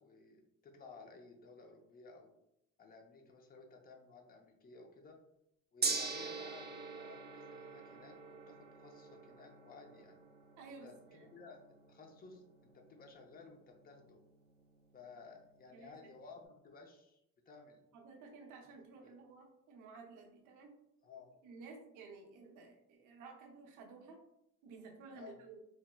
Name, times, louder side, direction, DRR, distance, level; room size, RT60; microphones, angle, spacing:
voice 1, 0.0-2.4 2.8-5.2 5.7-10.2 10.8-12.4 12.7-14.2 14.9-17.2 17.5-17.8 19.0-19.3 21.0-21.3 25.1-25.4, left 4 dB, 30° left, 3 dB, 0.5 m, -56 dB
Gong, 5.8-16.0, right 4 dB, 35° right, 0.6 m, -45 dB
voice 2, 10.6-11.3 15.7-15.9 17.9-20.7 21.4-24.2 24.6-25.6, right 4 dB, 90° right, 2 dB, 0.7 m, -54 dB
4.1 x 2.0 x 2.2 m, 0.80 s
cardioid pair, 90°, 30 cm